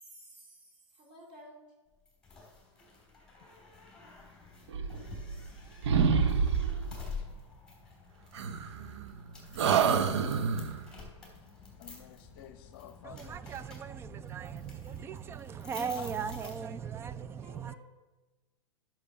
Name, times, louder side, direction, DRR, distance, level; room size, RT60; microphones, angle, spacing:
voice 1, 0.0-1.6 17.4-17.8, right 1 dB, 35° right, 3.4 m, -53 dB
sound 1, 2.0-17.0, left 4 dB, 5° left, 3.7 m, -49 dB
sound 2, 4.7-5.6 5.8-7.0 8.3-9.2 9.6-10.8, right 6 dB, 65° right, 0.8 m, -28 dB
voice 2, 11.8-13.3 16.0-16.1, left 11 dB, 45° left, 0.8 m, -50 dB
voice 3, 13.0-17.7, right 7 dB, 15° right, 0.4 m, -38 dB
9.8 x 6.1 x 6.7 m
hypercardioid pair, 110°, 16 cm